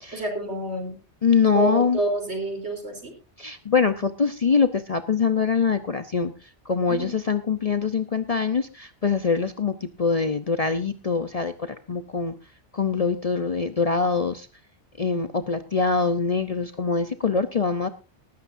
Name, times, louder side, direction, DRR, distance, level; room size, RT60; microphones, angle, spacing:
voice 1, 0.1-1.0 1.5-3.1 6.9-7.1, right 1 dB, 65° right, 4 dB, 4.0 m, -28 dB
voice 2, 1.2-2.0 3.4-6.3 6.7-12.3 12.7-14.5 15.0-17.9, left 5 dB, 40° left, 10 dB, 0.7 m, -24 dB
18.5 x 14.0 x 2.6 m, 0.29 s
omnidirectional pair, 1.2 m